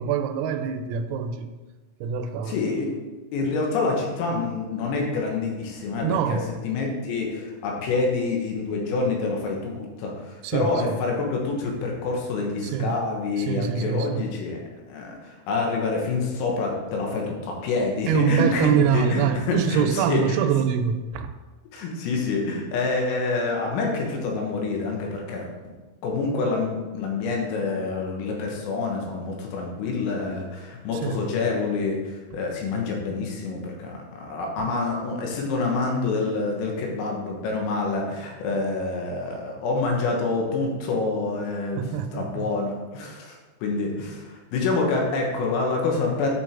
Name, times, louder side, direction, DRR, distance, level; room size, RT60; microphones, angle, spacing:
voice 1, 0.0-1.5 2.0-2.6 6.0-6.5 10.4-11.0 12.7-13.0 13.5-14.3 18.1-21.3 31.0-31.2 32.3-32.4 41.7-42.5, right 8 dB, 85° right, 7 dB, 3.3 m, -24 dB
voice 2, 2.5-2.9 3.3-20.4 21.7-25.7 26.0-43.4 43.6-46.3, left 3 dB, 90° left, 0 dB, 4.0 m, -27 dB
9.8 x 5.9 x 3.7 m, 1.2 s
omnidirectional pair, 6.0 m